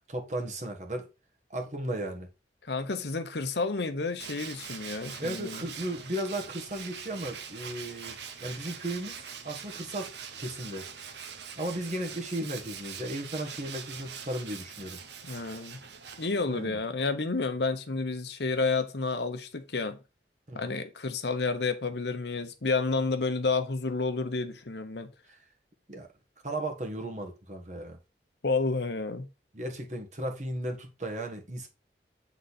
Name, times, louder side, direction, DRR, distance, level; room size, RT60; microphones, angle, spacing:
voice 1, 0.1-1.1 1.5-2.3 5.2-10.1 10.4-10.9 11.6-15.0 16.5-16.8 20.5-20.8 25.3-25.4 25.9-26.1 26.4-28.0 29.5-31.7, right 1 dB, 40° right, 1.5 m, -35 dB
voice 2, 2.6-5.6 15.2-15.8 16.2-20.0 20.5-25.1 28.4-29.3, left 3 dB, 70° left, 0.9 m, -30 dB
Tools, 4.2-16.7, right 7 dB, 75° right, 0.9 m, -43 dB
8.2 x 3.9 x 4.1 m
head